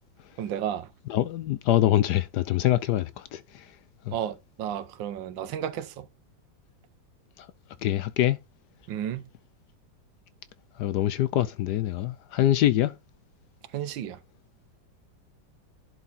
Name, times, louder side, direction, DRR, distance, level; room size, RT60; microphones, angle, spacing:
voice 1, 0.4-0.9 4.1-6.1 8.9-9.3 13.7-14.2, right 10 dB, 80° right, 1.5 m, -32 dB
voice 2, 1.1-3.4 4.1-4.2 7.8-8.4 10.8-12.9, left 13 dB, 70° left, 1.1 m, -24 dB
11.0 x 4.0 x 4.1 m
omnidirectional pair, 2.0 m